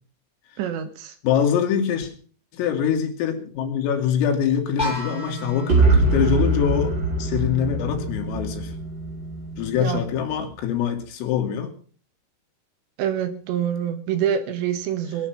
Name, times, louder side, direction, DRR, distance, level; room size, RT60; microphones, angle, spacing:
voice 1, 0.6-1.2 9.8-10.1 13.0-15.3, right 9 dB, 70° right, 10 dB, 3.1 m, -26 dB
voice 2, 1.2-2.1 2.5-8.7 9.6-11.7, left 8 dB, 85° left, 4 dB, 4.9 m, -24 dB
sound 1, 4.8-10.6, right 1 dB, 15° left, 1.7 m, -33 dB
sound 2, 5.7-9.6, right 3 dB, 25° right, 4.1 m, -22 dB
21.0 x 9.8 x 5.8 m, 0.43 s
omnidirectional pair, 5.8 m